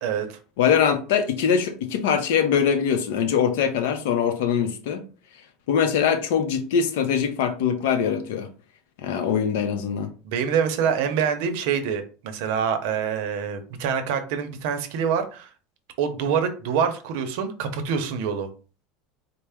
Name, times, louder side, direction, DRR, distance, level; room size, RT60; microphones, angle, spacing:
voice 1, 0.0-0.4 10.2-15.5 16.0-18.5, right 7 dB, 70° right, 0.6 m, -25 dB
voice 2, 0.6-5.0 5.7-8.5 9.0-10.1, left 7 dB, 85° left, 0.6 m, -22 dB
4.4 x 2.0 x 3.4 m
cardioid pair, 160°, 0 cm